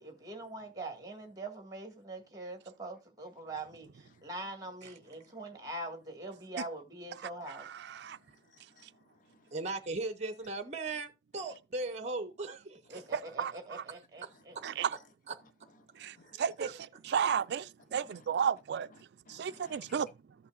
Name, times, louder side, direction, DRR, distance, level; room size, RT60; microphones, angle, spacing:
voice 1, 0.0-7.7 12.9-14.6, right 2 dB, 20° right, 1.8 m, -43 dB
voice 2, 7.2-8.2 13.1-13.8 14.6-14.9 16.0-16.7 17.1-18.9 19.3-20.1, right 7 dB, 65° right, 0.3 m, -33 dB
voice 3, 8.0-9.5 12.9-13.1 14.3-14.4 15.9-16.4 17.4-17.5 18.0-18.2 19.3-20.0, left 4 dB, 50° left, 0.7 m, -61 dB
voice 4, 9.5-12.8 14.2-14.6 15.3-15.4 16.2-16.7, right 3 dB, 40° right, 0.7 m, -38 dB
14.0 x 5.6 x 2.5 m
head